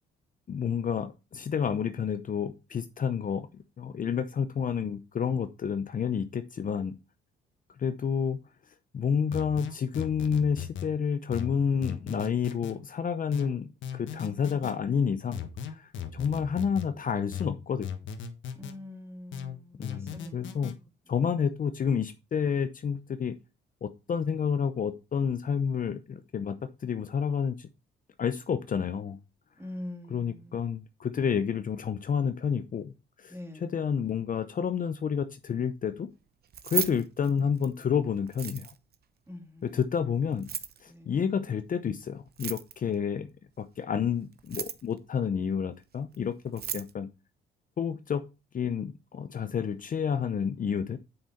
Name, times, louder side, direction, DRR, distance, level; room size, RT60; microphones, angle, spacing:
voice 1, 0.5-6.9 7.8-8.4 8.9-15.4 15.8-17.9 19.8-20.7 21.1-23.3 23.8-26.6 26.8-27.7 28.2-29.2 30.1-32.9 33.2-33.3 33.6-36.1 36.6-38.7 39.6-40.5 40.8-43.3 43.6-47.1 47.8-48.2 48.5-51.0, left 7 dB, 45° left, 0.7 m, -29 dB
sound 1, 9.3-10.9 11.3-12.8 13.3-14.7 15.3-16.9 17.3-18.8 19.3-20.7, left 8 dB, 75° left, 1.4 m, -37 dB
voice 2, 18.5-21.2 29.6-30.6 33.3-33.8 39.3-39.8 40.9-41.2, left 1 dB, 10° right, 2.4 m, -44 dB
Keys jangling, 36.4-37.8 38.3-38.9 40.3-40.8 42.3-42.9 44.3-45.0 46.1-46.2 46.5-46.9, right 8 dB, 50° right, 0.9 m, -35 dB
7.9 x 5.7 x 4.3 m
cardioid pair, 90°, 20 cm